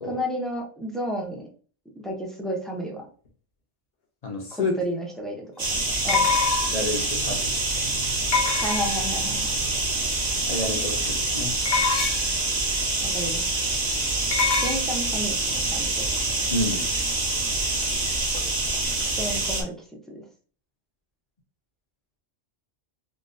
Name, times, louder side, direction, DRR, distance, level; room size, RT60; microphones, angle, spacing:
voice 1, 0.0-1.5 2.0-3.1 4.5-5.7 6.0-6.2 8.6-9.5 13.0-13.5 14.6-16.2 19.0-19.7 20.1-20.2, equal, ahead, -1 dB, 0.4 m, -32 dB
voice 2, 4.2-4.7 6.7-7.5 10.5-11.5 16.5-16.9, left 2 dB, 40° left, 1 dB, 0.6 m, -29 dB
sound 1, 4.5-4.6 6.1-6.9 8.3-9.2 11.7-12.4 14.3-14.8, left 5 dB, 60° left, 1.0 m, -24 dB
sound 2, 5.6-19.6, right 2 dB, 40° right, 0.8 m, -26 dB
3.8 x 2.3 x 2.5 m, 0.41 s
omnidirectional pair, 1.2 m